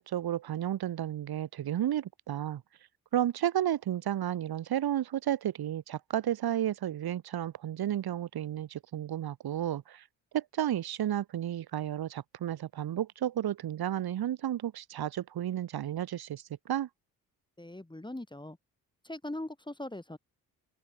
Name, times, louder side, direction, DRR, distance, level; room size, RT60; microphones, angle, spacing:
voice 1, 0.0-2.6 3.1-10.0 10.3-16.9, right 11 dB, 60° right, 2.1 m, -32 dB
voice 2, 17.6-18.6 19.0-20.2, left 1 dB, 10° left, 3.2 m, -40 dB
open air
hypercardioid pair, 45°, 43 cm